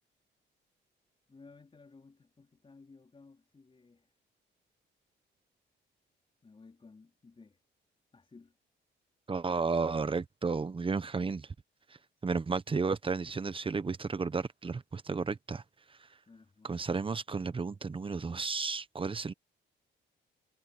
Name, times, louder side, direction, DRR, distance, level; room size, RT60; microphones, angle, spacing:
voice 1, 1.3-4.1 6.4-7.6 8.1-8.5 16.3-16.9, left 4 dB, 25° left, 4.3 m, -57 dB
voice 2, 9.3-11.5 12.2-15.6 16.6-19.3, right 4 dB, 25° right, 1.1 m, -33 dB
cardioid pair, 90°, 20 cm